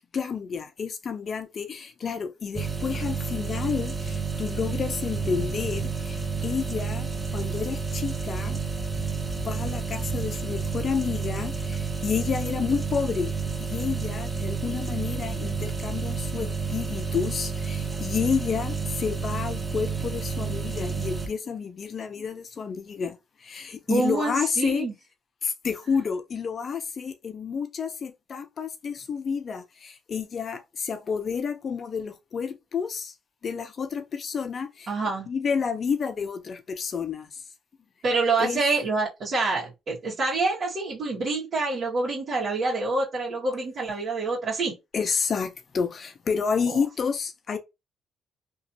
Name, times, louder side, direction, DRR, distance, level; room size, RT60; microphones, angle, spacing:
voice 1, 0.1-7.1 7.3-8.6 9.4-13.3 13.6-23.2 23.4-24.9 25.4-33.1 33.4-34.9 35.3-37.3 38.4-38.6 44.9-47.6, left 6 dB, 50° left, 0.6 m, -30 dB
sound 1, 2.5-21.3, right 5 dB, 20° right, 0.7 m, -30 dB
voice 2, 23.9-24.9 34.9-35.3 38.0-44.7 46.6-46.8, right 3 dB, 55° right, 1.6 m, -26 dB
3.0 x 2.7 x 2.7 m
cardioid pair, 90°, 0 cm